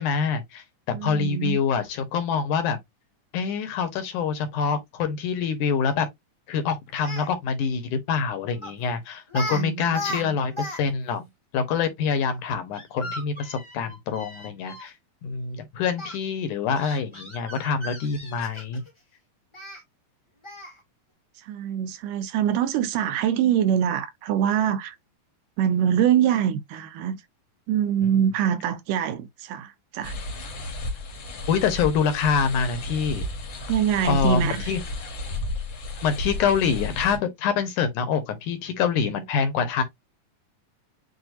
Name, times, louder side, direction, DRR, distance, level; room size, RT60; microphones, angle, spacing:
voice 1, 0.0-2.8 3.3-6.1 6.5-11.3 11.5-14.9 15.2-18.8 31.5-33.2 34.0-34.8 36.0-39.8, left 6 dB, 75° left, 2.1 m, -25 dB
voice 2, 0.9-1.6 9.5-10.4 21.4-25.0 25.6-27.2 27.7-30.1 33.7-34.7, right 9 dB, 80° right, 2.1 m, -24 dB
Speech, 6.9-7.3 8.6-8.8 9.3-9.6 9.9-10.8 11.1-11.2 12.7-14.9 16.0-16.1 16.8-18.9 19.5-19.8 20.4-20.8, equal, 25° left, 0.5 m, -36 dB
sound 1, 30.0-37.2, left 2 dB, 55° left, 1.4 m, -33 dB
7.7 x 2.6 x 2.5 m
omnidirectional pair, 3.9 m